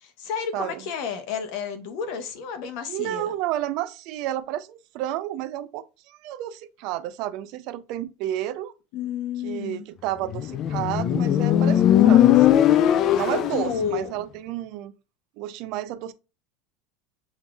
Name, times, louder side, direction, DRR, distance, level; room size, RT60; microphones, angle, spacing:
voice 1, 0.0-3.3 8.9-9.8 13.1-14.1, left 6 dB, 55° left, 1.0 m, -31 dB
voice 2, 2.9-8.7 9.4-12.7 13.1-14.9 15.4-16.1, right 13 dB, 50° right, 0.4 m, -31 dB
Motorcycle, 10.3-13.8, left 11 dB, 35° left, 0.3 m, -18 dB
7.0 x 2.7 x 2.3 m
supercardioid pair, 160°, 0 cm